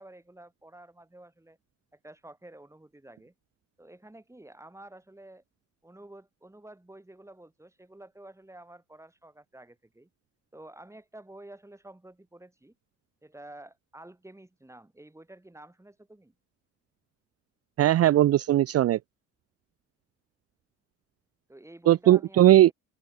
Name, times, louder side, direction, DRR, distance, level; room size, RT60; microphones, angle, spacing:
voice 1, 0.0-1.6 1.9-3.3 3.8-5.4 5.8-10.1 10.5-12.7 13.2-16.3 21.5-22.7, right 1 dB, 10° right, 5.1 m, -50 dB
voice 2, 17.8-19.0 21.9-22.7, right 13 dB, 55° right, 0.5 m, -19 dB
open air
cardioid pair, 90°, 30 cm